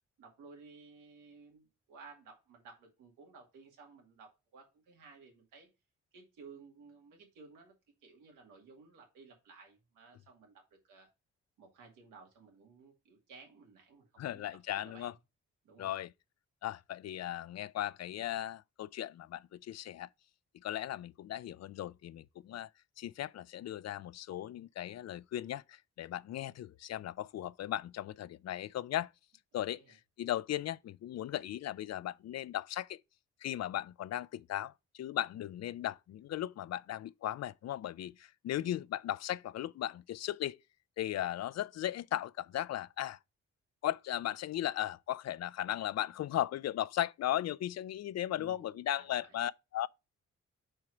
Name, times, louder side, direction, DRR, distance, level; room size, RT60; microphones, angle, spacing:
voice 1, 0.2-5.7 6.1-7.7 8.0-11.1 11.6-14.5 14.8-15.1 15.6-15.9 29.5-30.0 38.6-38.8 48.3-49.4, right 4 dB, 90° right, 2.2 m, -56 dB
voice 2, 14.2-15.1 15.8-16.1 16.6-20.1 20.6-22.7 23.0-29.1 29.5-33.0 33.4-40.6 41.0-43.2 43.8-49.9, left 12 dB, 55° left, 0.4 m, -37 dB
4.7 x 4.5 x 5.9 m
supercardioid pair, 50°, 31 cm